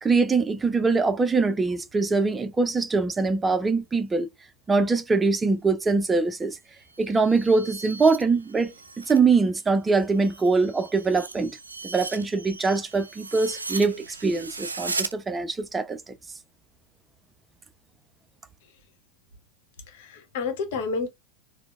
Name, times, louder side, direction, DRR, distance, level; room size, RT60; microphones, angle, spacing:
voice 1, 0.0-4.3 4.7-6.6 7.0-11.6 11.8-16.1, right 4 dB, 15° right, 0.5 m, -23 dB
sound 1, 6.8-9.3 9.6-15.1, right 4 dB, 85° right, 0.4 m, -37 dB
voice 2, 19.8-21.1, left 4 dB, 60° left, 1.0 m, -31 dB
4.4 x 2.1 x 2.3 m
figure-of-eight pair, 85°, 0 cm